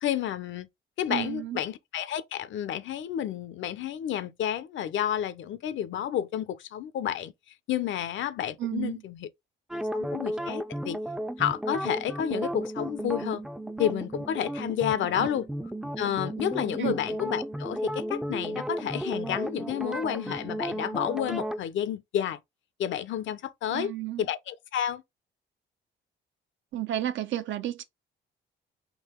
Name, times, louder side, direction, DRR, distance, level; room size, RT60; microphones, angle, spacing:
voice 1, 0.0-0.7 1.0-7.3 7.7-9.3 9.9-11.0 11.4-13.4 13.8-15.5 16.0-22.4 22.8-23.9 24.2-25.0, left 10 dB, 70° left, 0.7 m, -30 dB
voice 2, 1.1-1.6 8.6-9.0 15.1-15.3 16.8-16.9 23.7-24.2 26.7-27.8, right 12 dB, 70° right, 0.7 m, -31 dB
sound 1, 9.7-21.6, equal, 5° right, 0.4 m, -34 dB
3.9 x 2.8 x 4.3 m
cardioid pair, 90°, 20 cm